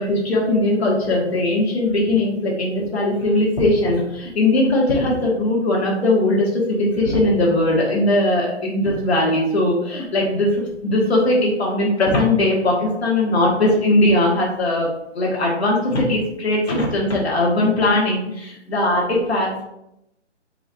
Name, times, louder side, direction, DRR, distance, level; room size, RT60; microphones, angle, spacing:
voice 1, 0.0-10.5 10.8-14.9 15.1-19.6, left 1 dB, 60° left, -4 dB, 1.4 m, -19 dB
4.6 x 2.3 x 4.2 m, 0.83 s
hypercardioid pair, 170°, 36 cm